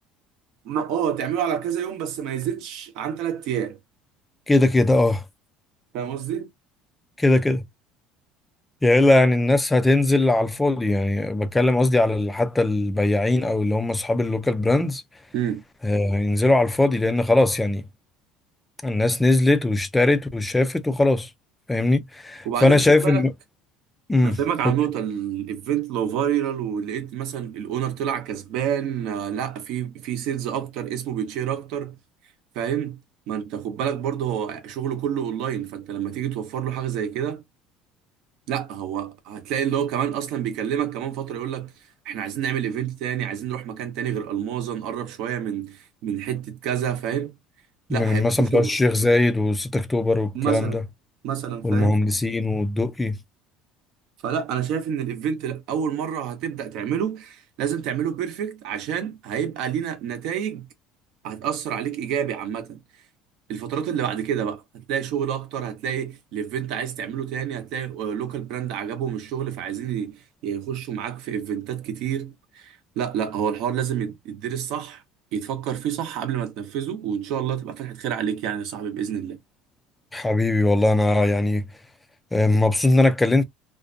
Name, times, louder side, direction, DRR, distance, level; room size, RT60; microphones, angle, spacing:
voice 1, 0.6-3.8 5.9-6.5 15.3-15.6 22.4-23.2 24.2-32.0 32.5-33.0 33.3-37.4 38.5-41.7 42.0-47.4 47.9-48.8 50.3-50.8 51.2-51.9 54.2-60.7 61.2-62.8 63.5-75.0 75.3-79.4, right 9 dB, 60° right, 0.7 m, -28 dB
voice 2, 4.5-5.2 7.2-7.6 8.8-15.0 15.8-17.8 18.8-21.3 21.7-23.3 24.1-24.4 24.6-24.7 47.9-50.8 51.6-53.2 80.1-81.6 82.3-83.4, left 2 dB, 10° left, 0.4 m, -20 dB
2.5 x 2.2 x 2.4 m
cardioid pair, 160°, 0 cm